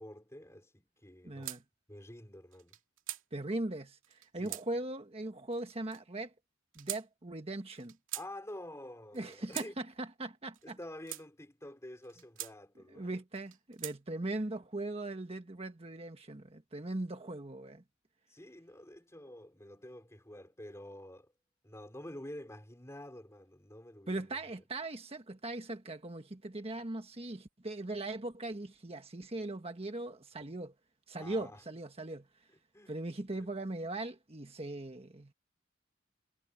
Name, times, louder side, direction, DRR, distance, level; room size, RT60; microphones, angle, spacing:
voice 1, 0.0-1.6 1.9-2.7 4.4-4.6 8.1-9.8 10.6-13.1 18.3-21.3 21.6-24.3 31.2-31.6 32.7-33.0 33.4-33.5, left 1 dB, 15° left, 3.4 m, -48 dB
voice 2, 1.2-1.6 3.3-6.3 6.7-8.0 9.1-10.8 12.9-17.8 24.1-30.7 31.1-32.3 32.9-35.3, right 2 dB, 30° right, 1.4 m, -39 dB
sound 1, 1.4-1.6 2.5-3.2 4.0-4.7 5.5-6.0 6.7-7.1 7.8-8.3 9.1-9.7 10.5-11.3 12.0-12.5 13.3-14.0, right 14 dB, 90° right, 2.5 m, -43 dB
head